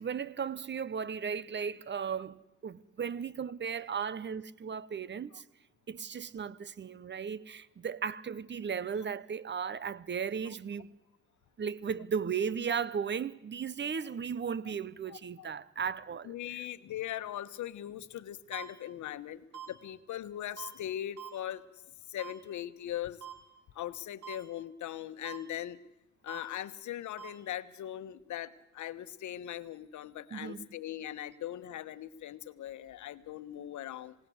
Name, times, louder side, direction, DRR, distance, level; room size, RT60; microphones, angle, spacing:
voice 1, 0.0-5.4 5.9-10.9 11.6-16.4 30.3-30.7, right 6 dB, 35° right, 0.9 m, -36 dB
voice 2, 15.1-15.5 16.2-21.6 22.1-23.2 23.7-25.8 26.2-34.1, left 12 dB, 75° left, 1.2 m, -40 dB
sound 1, 18.5-18.6 19.5-19.7 20.6-20.7 21.2-21.3 22.2-22.3 23.2-23.3 24.2-24.4 25.2-25.4 26.3-26.4 27.2-27.3, right 9 dB, 75° right, 4.9 m, -43 dB
27.5 x 18.0 x 7.9 m
cardioid pair, 90°, 30 cm